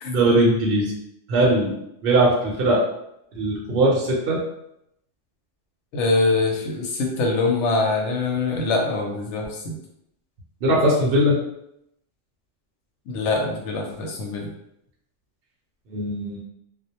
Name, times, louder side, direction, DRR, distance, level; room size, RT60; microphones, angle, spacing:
voice 1, 0.1-0.9 1.3-1.7 2.0-2.8 3.3-4.4 10.6-11.4 15.9-16.4, right 1 dB, 60° right, -4 dB, 0.7 m, -20 dB
voice 2, 5.9-9.7 13.1-14.5, left 3 dB, 70° left, 1 dB, 0.9 m, -23 dB
2.2 x 2.0 x 2.8 m, 0.79 s
omnidirectional pair, 1.3 m